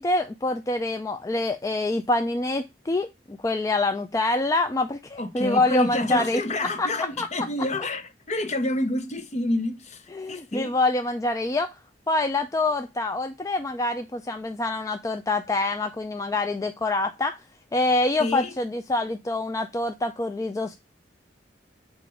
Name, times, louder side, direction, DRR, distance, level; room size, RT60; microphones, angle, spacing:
voice 1, 0.0-6.9 7.2-7.3 10.1-11.7 12.1-17.4 17.7-20.7, left 2 dB, 20° left, 0.3 m, -26 dB
voice 2, 5.2-10.0 10.3-10.7 18.2-18.5, left 1 dB, 40° left, 0.8 m, -28 dB
7.6 x 2.5 x 5.1 m
head